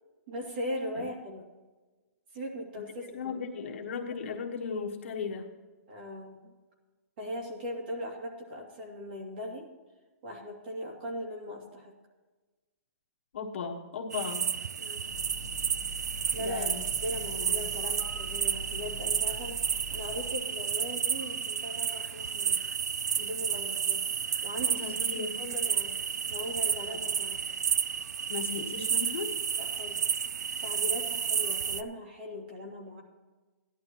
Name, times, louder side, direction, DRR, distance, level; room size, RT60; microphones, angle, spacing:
voice 1, 0.3-1.5 2.3-3.4 3.7-3.8 5.9-6.5 7.2-9.7 10.2-11.9 14.8-15.2 16.3-22.6 23.2-24.0 24.4-24.8 25.4-25.9 26.3-27.4 29.6-30.0 30.6-33.0, equal, 40° right, 0 dB, 2.6 m, -39 dB
voice 2, 3.1-5.5 13.3-14.6 16.3-16.8 17.2-17.7 24.8-25.4 26.9-27.0 28.3-29.3, left 5 dB, 45° left, 1 dB, 1.4 m, -36 dB
sound 1, 14.1-31.8, right 7 dB, 85° right, 0.5 m, -31 dB
sound 2, 15.1-20.3, right 1 dB, 30° left, 0.9 m, -44 dB
17.0 x 11.0 x 3.0 m, 1.2 s
hypercardioid pair, 175°, 9 cm